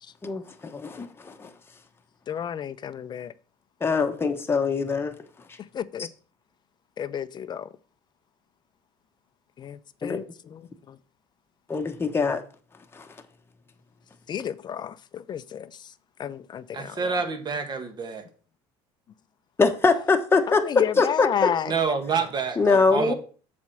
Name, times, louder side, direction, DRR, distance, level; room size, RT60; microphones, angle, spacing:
voice 1, 0.2-1.5 3.8-5.2 10.0-10.2 11.7-12.4 12.9-13.1 19.6-20.6 21.0-21.3 22.6-23.1, left 4 dB, 20° left, 1.1 m, -23 dB
voice 2, 2.3-3.3 5.6-6.1 7.0-7.7 9.6-11.0 14.3-15.9 16.2-17.2 20.5-21.7 23.0-23.1, left 9 dB, 35° left, 0.6 m, -31 dB
voice 3, 16.7-18.2 21.6-23.1, right 5 dB, 35° right, 1.6 m, -28 dB
7.3 x 4.3 x 6.2 m
supercardioid pair, 100°, 12 cm